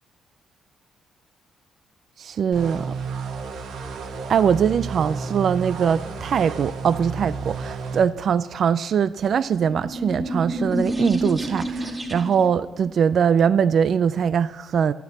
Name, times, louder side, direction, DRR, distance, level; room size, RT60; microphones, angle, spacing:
voice 1, 2.2-2.8 4.3-14.9, right 7 dB, 60° right, 14 dB, 0.4 m, -22 dB
sound 1, 2.5-8.0, right 4 dB, 85° right, 1.9 m, -32 dB
sound 2, 9.6-12.5, right 1 dB, 15° right, 2.2 m, -28 dB
13.5 x 9.2 x 7.2 m, 1.1 s
cardioid pair, 90°, 0 cm